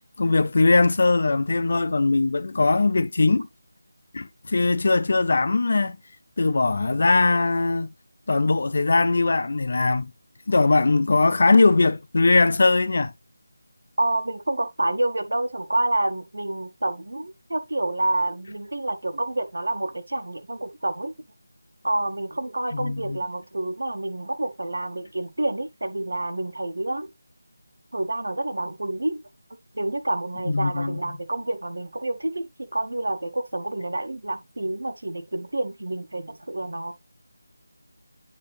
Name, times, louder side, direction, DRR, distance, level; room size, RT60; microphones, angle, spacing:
voice 1, 0.2-3.5 4.1-6.0 6.4-7.9 8.3-10.1 10.5-13.1 22.7-23.2 30.5-31.0, left 3 dB, 35° left, 0.5 m, -20 dB
voice 2, 14.0-21.1 21.8-27.1 27.9-29.2 29.7-36.9, right 2 dB, 85° right, 1.7 m, -28 dB
9.9 x 3.4 x 3.4 m
figure-of-eight pair, 180°, 0 cm